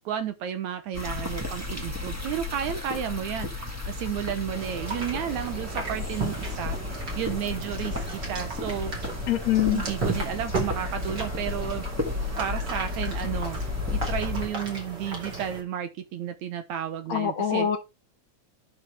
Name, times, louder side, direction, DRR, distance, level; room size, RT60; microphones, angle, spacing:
voice 1, 0.1-6.8 7.2-8.9 9.7-11.9 12.4-13.6 13.9-17.7, right 9 dB, 70° right, 2.0 m, -32 dB
sound 1, 0.9-14.5, left 3 dB, 10° right, 0.8 m, -33 dB
sound 2, 4.5-15.6, right 3 dB, 35° right, 3.1 m, -35 dB
voice 2, 9.3-9.8 17.1-17.8, left 10 dB, 65° left, 2.0 m, -24 dB
12.0 x 6.0 x 3.4 m
omnidirectional pair, 3.7 m